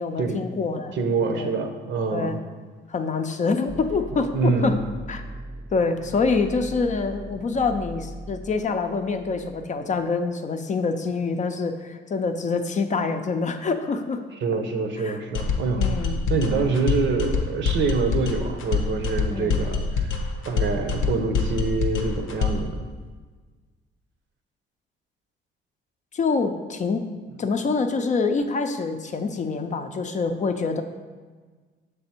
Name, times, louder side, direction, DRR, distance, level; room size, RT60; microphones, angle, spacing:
voice 1, 0.0-0.9 1.3-1.5 2.1-2.3 2.9-4.7 5.1-5.2 5.7-14.2 15.0-15.2 15.8-16.2 19.3-19.6 26.1-27.1 27.4-30.8, left 4 dB, 40° left, 7 dB, 0.5 m, -26 dB
voice 2, 0.9-2.4 4.1-4.8 14.4-22.8 27.3-27.4, right 4 dB, 65° right, 6 dB, 0.7 m, -26 dB
sound 1, 3.7-9.7, right 1 dB, 20° right, 0.5 m, -40 dB
sound 2, 15.4-22.7, left 4 dB, 80° left, 0.6 m, -25 dB
6.6 x 3.4 x 4.3 m, 1.4 s
cardioid pair, 90°, 20 cm